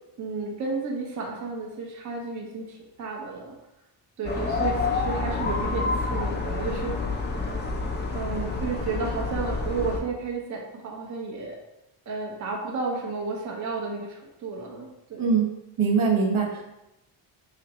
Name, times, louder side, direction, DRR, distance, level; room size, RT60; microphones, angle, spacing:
voice 1, 0.2-3.5 4.2-6.9 8.1-11.6 12.1-15.3, right 4 dB, 40° right, -1 dB, 0.7 m, -32 dB
sound 1, 4.2-10.0, left 3 dB, 25° left, 0.3 m, -28 dB
voice 2, 15.2-15.5 15.8-16.6, right 5 dB, 75° right, 0 dB, 1.0 m, -22 dB
5.0 x 3.1 x 2.9 m, 0.90 s
wide cardioid pair, 160°, 49 cm